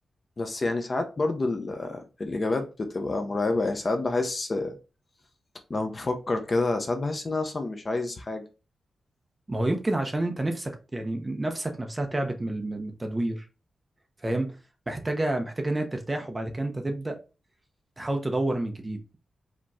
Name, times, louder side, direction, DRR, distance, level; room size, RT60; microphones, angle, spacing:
voice 1, 0.4-4.7 5.7-8.4, left 2 dB, 30° left, 0.7 m, -28 dB
voice 2, 9.5-13.5 14.2-14.5 14.9-17.2 18.0-19.2, right 1 dB, 15° right, 0.7 m, -29 dB
5.0 x 3.0 x 3.5 m
wide cardioid pair, 170°, 0 cm